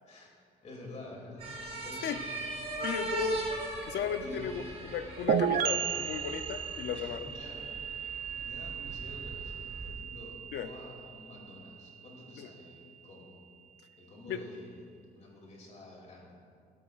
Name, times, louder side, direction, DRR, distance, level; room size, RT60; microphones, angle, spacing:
voice 1, 0.6-2.7 4.2-4.4 6.9-7.7 8.2-13.4 14.0-16.3, left 1 dB, 40° left, -2 dB, 2.6 m, -49 dB
sound 1, 1.4-9.9, right 2 dB, 35° right, 1.2 m, -40 dB
voice 2, 2.8-3.4 3.9-7.2 10.5-10.7 12.4-12.5 14.3-14.4, left 8 dB, 75° left, 10 dB, 0.5 m, -35 dB
sound 2, 5.3-12.8, right 8 dB, 55° right, 0.4 m, -35 dB
16.0 x 8.1 x 2.4 m, 2.3 s
cardioid pair, 125°, 18 cm